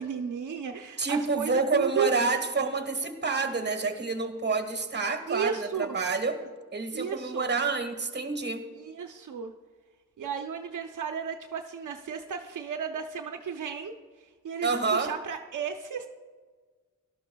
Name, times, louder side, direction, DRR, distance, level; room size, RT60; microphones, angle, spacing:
voice 1, 0.0-2.1 5.3-6.0 6.9-7.5 8.8-9.5 10.2-13.9 14.4-16.1, right 7 dB, 75° right, 4 dB, 0.7 m, -34 dB
voice 2, 1.0-6.4 6.7-8.6 14.6-15.1, right 4 dB, 35° right, 6 dB, 1.4 m, -28 dB
17.5 x 12.5 x 2.3 m, 1.4 s
wide cardioid pair, 95°, 31 cm